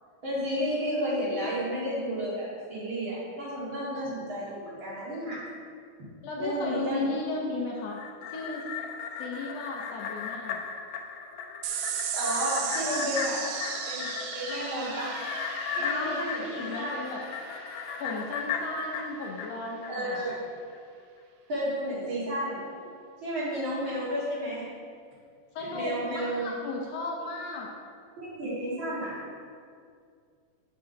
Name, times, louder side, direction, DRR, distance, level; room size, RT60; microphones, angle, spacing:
voice 1, 0.2-5.5 6.4-7.1 12.1-13.4 13.9-14.1 14.3-15.2 15.8-16.9 19.9-20.3 21.5-22.6 23.2-24.7 25.7-26.5 28.2-29.2, equal, 40° right, -7 dB, 2.6 m, -32 dB
voice 2, 6.2-8.0 8.3-8.8 9.2-10.6 15.8-17.2 18.0-20.2 25.5-27.7, left 2 dB, 70° left, -1 dB, 1.6 m, -35 dB
sound 1, 7.8-20.4 20.7-20.8, left 6 dB, 90° left, 2.2 m, -36 dB
sound 2, 11.6-18.4, right 7 dB, 80° right, 2.0 m, -36 dB
7.3 x 7.3 x 3.9 m, 2.2 s
omnidirectional pair, 3.6 m